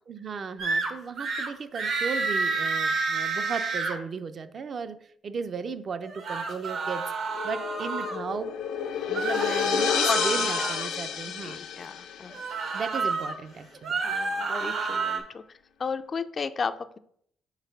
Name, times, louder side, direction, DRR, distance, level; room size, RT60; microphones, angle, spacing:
voice 1, 0.1-5.0 5.2-7.0 7.4-8.5 9.1-11.6 12.7-14.0, right 5 dB, 50° right, 10 dB, 0.5 m, -35 dB
sound 1, 0.6-0.9 1.2-1.5 1.7-3.9 6.0-8.2 9.1-10.9 12.3-13.3 13.7-15.2, right 4 dB, 70° right, 1.1 m, -29 dB
sound 2, 7.3-12.5, left 8 dB, 90° left, 0.6 m, -30 dB
voice 2, 10.0-10.7 11.4-12.3 14.0-17.0, left 5 dB, 40° left, 11 dB, 0.3 m, -34 dB
4.4 x 4.0 x 5.3 m, 0.67 s
cardioid pair, 90°, 0 cm